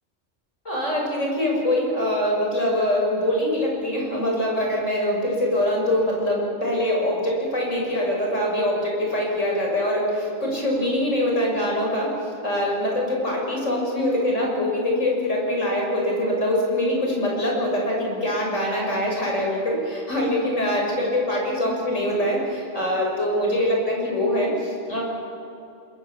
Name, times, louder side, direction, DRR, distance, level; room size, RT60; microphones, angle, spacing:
voice 1, 0.7-12.1 12.4-25.0, left 1 dB, 85° left, -1 dB, 7.1 m, -23 dB
27.0 x 22.5 x 7.2 m, 2.8 s
omnidirectional pair, 1.3 m